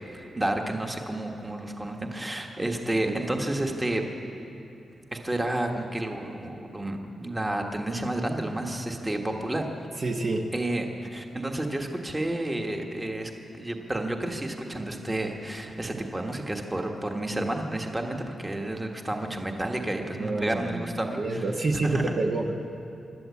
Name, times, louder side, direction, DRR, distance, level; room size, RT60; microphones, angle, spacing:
voice 1, 0.1-4.0 5.1-9.7 10.5-13.3 13.6-21.4 21.7-22.2, right 1 dB, 15° right, 3 dB, 1.5 m, -30 dB
voice 2, 10.0-10.4 20.1-22.6, right 3 dB, 40° right, 2 dB, 1.2 m, -28 dB
25.5 x 12.5 x 8.5 m, 2.8 s
wide cardioid pair, 165°, 0 cm